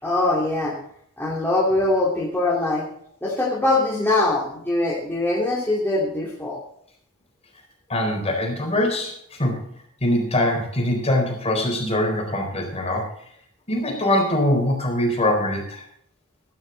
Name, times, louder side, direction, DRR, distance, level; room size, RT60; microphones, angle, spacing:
voice 1, 0.0-0.7 1.2-2.8 3.2-6.6, left 2 dB, 10° left, -6 dB, 2.8 m, -22 dB
voice 2, 7.9-9.6 10.0-13.0 13.7-15.8, left 1 dB, 30° left, 1 dB, 4.3 m, -23 dB
15.0 x 11.5 x 4.0 m, 0.67 s
head